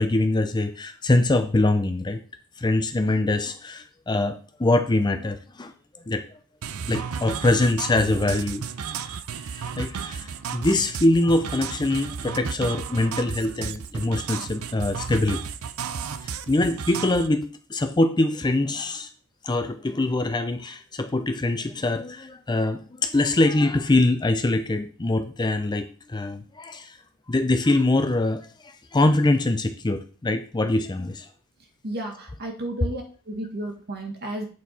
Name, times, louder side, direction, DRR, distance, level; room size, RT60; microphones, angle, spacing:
voice 1, 0.0-2.2 2.6-5.7 6.1-6.2 6.9-8.6 9.5-15.4 16.2-19.1 19.4-27.0 27.3-31.3, left 2 dB, 20° left, 8 dB, 0.5 m, -23 dB
sound 1, 6.6-17.3, right 6 dB, 70° right, 0.5 m, -33 dB
voice 2, 31.8-34.4, right 1 dB, 45° right, 2 dB, 1.8 m, -33 dB
8.3 x 4.5 x 4.1 m, 0.40 s
head